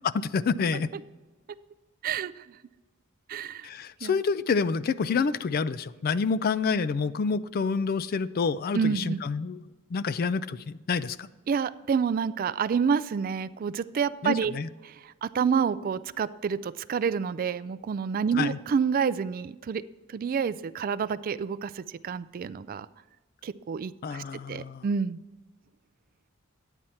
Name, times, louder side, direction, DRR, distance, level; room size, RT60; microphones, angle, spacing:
voice 1, 0.1-0.9 3.6-9.6 9.9-11.3 14.2-14.7 18.4-18.6 24.0-24.9, left 5 dB, 45° left, 17 dB, 0.3 m, -28 dB
voice 2, 3.3-3.7 4.0-4.2 8.7-9.2 11.5-14.5 14.8-19.8 20.1-22.9 23.4-25.2, right 6 dB, 40° right, 17 dB, 0.3 m, -28 dB
11.0 x 9.0 x 4.3 m, 1.3 s
head